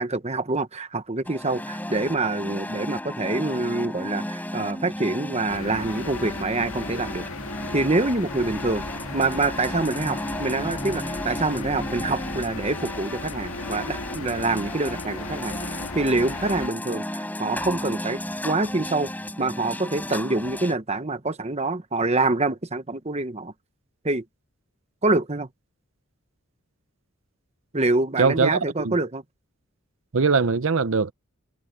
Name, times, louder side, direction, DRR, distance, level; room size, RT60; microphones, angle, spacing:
voice 1, 0.0-7.2 7.7-8.8 9.1-15.6 15.9-19.1 19.4-23.5 24.0-24.2 25.0-25.5 27.7-29.2, right 2 dB, 30° right, 1.2 m, -26 dB
sound 1, 1.3-20.7, left 1 dB, 10° left, 6.0 m, -34 dB
sound 2, 5.5-16.7, left 2 dB, 80° left, 1.8 m, -36 dB
voice 2, 28.2-28.6 28.8-28.9 30.1-31.1, right 4 dB, 65° right, 0.7 m, -21 dB
head